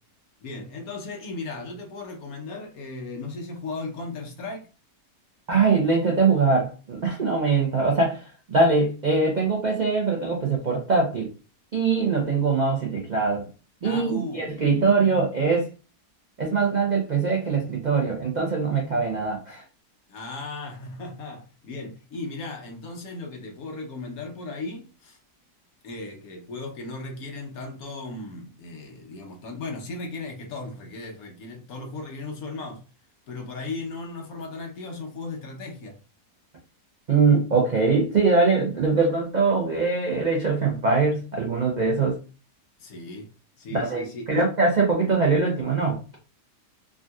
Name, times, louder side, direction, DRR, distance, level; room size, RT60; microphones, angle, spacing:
voice 1, 0.4-4.7 13.8-14.7 20.1-25.2 25.8-32.8 33.3-36.0 42.8-43.3 43.6-44.5, left 3 dB, 65° left, 1.2 m, -36 dB
voice 2, 5.5-8.2 8.5-11.3 11.7-13.5 13.8-15.6 16.4-19.6 37.1-42.2 43.7-46.0, right 4 dB, 75° right, 0.4 m, -22 dB
3.7 x 2.6 x 2.3 m
omnidirectional pair, 1.8 m